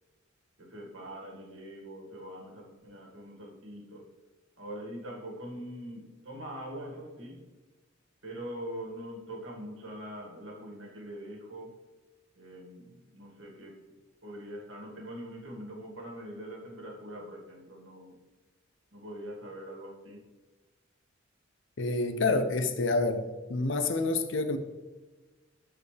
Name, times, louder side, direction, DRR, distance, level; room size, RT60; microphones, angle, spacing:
voice 1, 0.6-4.1 4.6-7.5 8.2-11.8 12.4-13.8 14.2-18.2 18.9-20.2, equal, 75° right, -1 dB, 1.9 m, -43 dB
voice 2, 21.8-24.6, left 3 dB, 65° left, 9 dB, 0.7 m, -28 dB
12.0 x 4.7 x 3.3 m, 1.2 s
head